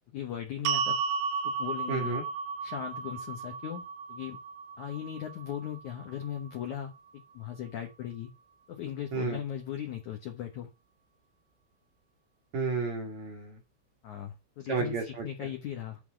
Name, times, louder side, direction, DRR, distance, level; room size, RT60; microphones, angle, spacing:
voice 1, 0.1-1.0 1.4-2.2 2.6-4.4 4.8-8.3 8.7-10.7 14.0-16.0, left 10 dB, 90° left, 1.7 m, -38 dB
sound 1, 0.7-6.9, right 5 dB, 80° right, 2.9 m, -34 dB
voice 2, 1.9-2.2 9.1-9.4 12.5-13.6 14.7-15.3, right 4 dB, 60° right, 2.0 m, -32 dB
11.0 x 3.9 x 6.3 m
omnidirectional pair, 5.3 m